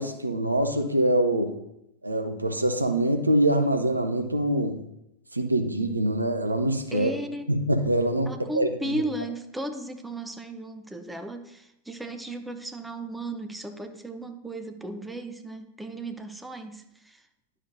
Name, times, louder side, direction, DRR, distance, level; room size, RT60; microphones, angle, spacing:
voice 1, 0.0-1.6 2.0-4.8 5.3-7.1 7.5-8.7, right 1 dB, 85° right, 7 dB, 0.7 m, -24 dB
voice 2, 6.9-7.4 8.3-17.2, right 1 dB, 5° right, 6 dB, 0.7 m, -35 dB
10.5 x 6.2 x 2.7 m, 0.83 s
figure-of-eight pair, 90°, 0 cm